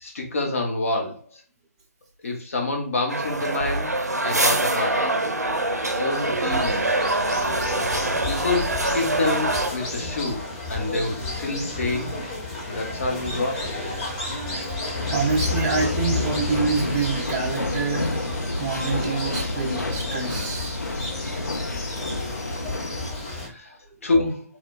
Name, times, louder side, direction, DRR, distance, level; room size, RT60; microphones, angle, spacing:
voice 1, 0.0-1.4 2.2-3.9 4.2-5.3 5.9-7.0 8.2-10.4 10.7-12.1 12.7-13.7 23.4-23.8 24.0-24.4, left 2 dB, 55° left, 1 dB, 0.8 m, -27 dB
sound 1, 3.1-9.7, right 2 dB, 85° right, 0.5 m, -24 dB
sound 2, 5.9-23.5, left 2 dB, 25° left, 0.9 m, -32 dB
sound 3, 14.9-23.1, left 2 dB, 85° left, 0.4 m, -30 dB
voice 2, 15.1-20.8, right 4 dB, 25° right, -1 dB, 0.4 m, -27 dB
3.1 x 2.1 x 2.3 m, 0.36 s
figure-of-eight pair, 135°, 9 cm